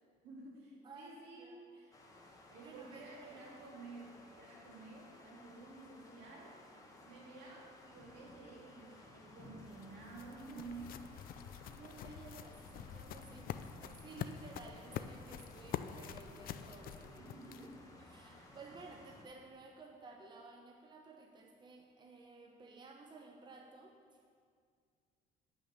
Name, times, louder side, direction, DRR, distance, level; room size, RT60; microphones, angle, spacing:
voice 1, 0.2-2.0 2.5-6.6 7.0-11.1 17.2-17.8 18.3-18.6, right 3 dB, 80° right, -3 dB, 2.9 m, -52 dB
voice 2, 0.8-1.8 2.5-3.4 8.9-9.3 10.4-10.9 11.7-17.7 18.0-24.0, right 3 dB, 25° right, 2 dB, 0.9 m, -55 dB
sound 1, 1.9-19.2, left 2 dB, 20° left, 1.5 m, -58 dB
sound 2, 9.4-17.9, left 10 dB, 60° left, 0.5 m, -46 dB
9.8 x 6.1 x 6.7 m, 2.1 s
cardioid pair, 110°, 17 cm